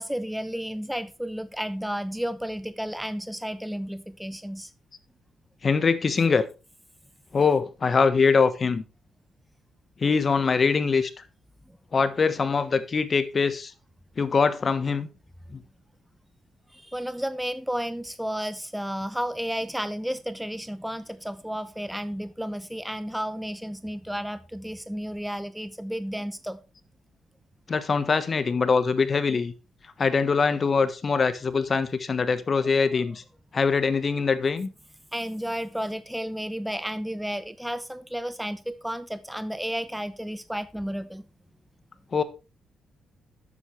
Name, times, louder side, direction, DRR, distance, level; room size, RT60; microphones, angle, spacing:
voice 1, 0.0-4.7 16.7-26.6 35.1-41.2, equal, 5° right, 0.8 m, -32 dB
voice 2, 5.6-6.4 7.3-8.8 10.0-11.3 11.9-13.7 14.2-15.1 15.5-15.6 27.7-29.5 29.8-33.2 33.5-34.7 42.1-42.2, left 5 dB, 45° left, 1.3 m, -23 dB
11.5 x 8.3 x 3.3 m
cardioid pair, 80°, 0 cm